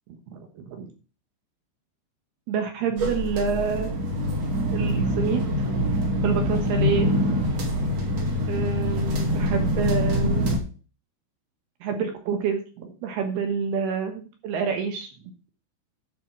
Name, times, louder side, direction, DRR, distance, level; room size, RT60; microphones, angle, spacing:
voice 1, 0.3-0.9 2.5-3.9 4.7-7.1 8.5-10.6 11.8-15.1, right 6 dB, 65° right, 5 dB, 2.8 m, -28 dB
sound 1, 3.0-10.6, left 1 dB, 45° right, 2.6 m, -24 dB
10.5 x 6.0 x 6.1 m, 0.36 s
omnidirectional pair, 5.8 m